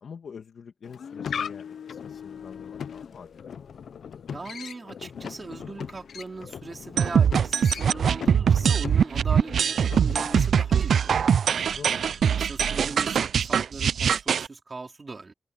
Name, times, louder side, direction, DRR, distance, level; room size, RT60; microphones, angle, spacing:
voice 1, 0.0-3.6 11.7-12.2, left 6 dB, 75° left, 2.0 m, -45 dB
sound 1, 0.8-10.9, left 7 dB, 90° left, 0.7 m, -39 dB
sound 2, 2.3-8.3, left 5 dB, 55° left, 4.9 m, -56 dB
voice 2, 4.3-11.7 12.4-15.3, right 3 dB, 35° right, 3.5 m, -39 dB
sound 3, 7.0-14.5, right 7 dB, 85° right, 0.4 m, -22 dB
wide cardioid pair, 120°, 0 cm